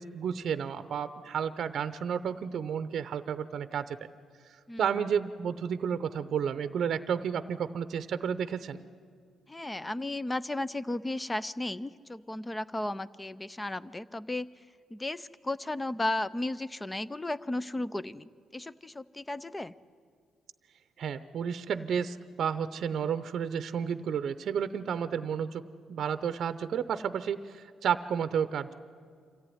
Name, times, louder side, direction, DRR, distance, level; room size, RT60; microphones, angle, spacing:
voice 1, 0.0-4.0 4.8-8.8 21.0-25.6 25.9-28.7, right 7 dB, 60° right, 12 dB, 0.7 m, -31 dB
voice 2, 9.5-14.5 14.9-19.7, left 1 dB, 15° left, 16 dB, 0.6 m, -34 dB
26.0 x 14.5 x 9.9 m, 2.1 s
cardioid pair, 90°, 0 cm